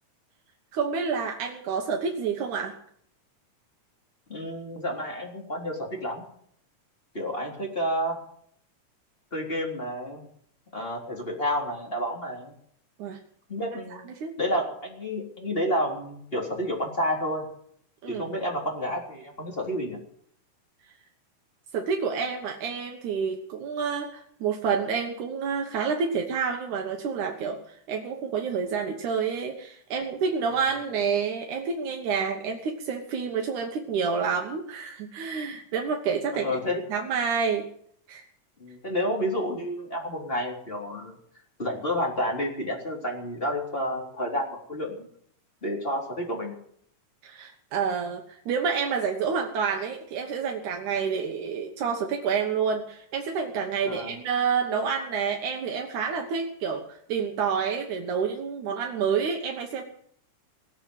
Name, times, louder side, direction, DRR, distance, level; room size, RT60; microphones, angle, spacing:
voice 1, 0.7-2.8 13.0-13.2 13.9-14.3 18.0-18.2 21.7-36.6 36.9-37.6 38.1-38.2 47.2-59.8, right 6 dB, 75° right, 2 dB, 2.8 m, -28 dB
voice 2, 4.3-6.2 7.1-8.2 9.3-10.3 10.7-12.5 13.5-14.0 14.4-17.5 18.0-20.0 36.3-36.8 38.6-41.1 41.6-45.0 45.6-46.6 53.8-54.1, equal, 20° left, -1 dB, 3.7 m, -30 dB
19.5 x 7.4 x 9.9 m, 0.65 s
omnidirectional pair, 3.5 m